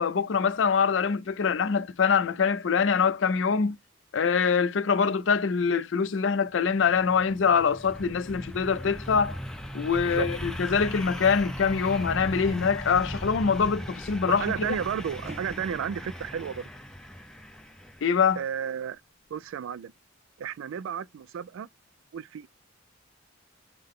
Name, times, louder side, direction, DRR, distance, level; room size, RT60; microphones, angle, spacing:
voice 1, 0.0-3.8 4.1-9.4 9.7-14.7 18.0-18.4, left 6 dB, 70° left, 0.4 m, -24 dB
sound 1, 6.7-18.3, equal, 5° left, 0.5 m, -38 dB
voice 2, 14.2-16.7 18.4-19.0 19.3-19.9 20.4-21.7 22.1-22.5, right 8 dB, 80° right, 0.3 m, -33 dB
sound 2, 14.3-18.6 18.9-19.0 19.3-19.4, right 3 dB, 30° right, 1.1 m, -50 dB
5.5 x 2.1 x 3.6 m
head